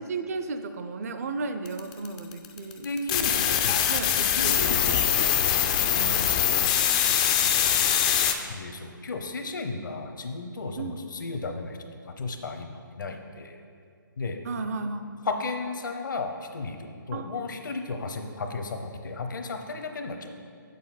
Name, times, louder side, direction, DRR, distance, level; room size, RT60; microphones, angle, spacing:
voice 1, 0.0-2.9 3.2-3.3 3.9-5.1 5.6-6.8 7.6-8.2 10.8-11.0 14.4-15.1 17.1-17.4, right 3 dB, 45° right, 8 dB, 0.5 m, -35 dB
sound 1, 1.7-8.3, left 9 dB, 20° left, 0.3 m, -23 dB
voice 2, 2.8-3.7 4.4-5.0 8.5-11.8 12.2-13.6 14.2-14.4 15.3-20.4, left 3 dB, 65° left, 5 dB, 0.8 m, -34 dB
6.9 x 6.7 x 4.0 m, 2.2 s
figure-of-eight pair, 140°, 11 cm